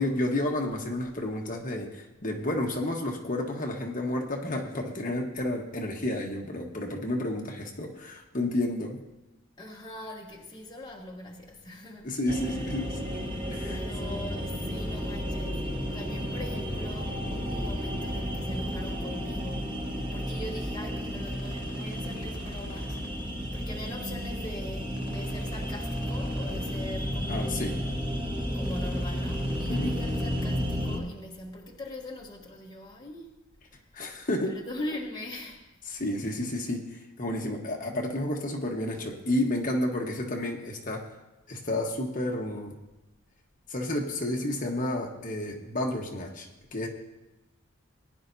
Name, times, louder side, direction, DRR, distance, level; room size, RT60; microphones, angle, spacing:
voice 1, 0.0-9.0 12.0-13.2 13.5-13.8 27.3-27.8 29.7-29.9 33.9-34.6 35.9-41.1 41.5-42.8 43.7-46.9, left 1 dB, 40° left, 1.3 m, -31 dB
voice 2, 9.6-12.1 13.7-15.6 15.9-19.7 20.1-23.0 23.5-27.8 28.5-33.3 34.5-35.6, left 1 dB, 20° left, 1.2 m, -41 dB
sound 1, 12.3-31.0, equal, 20° right, 1.4 m, -32 dB
sound 2, 21.2-23.1 24.9-26.8 28.6-30.5, left 1 dB, 60° left, 3.4 m, -48 dB
20.0 x 10.5 x 2.7 m
head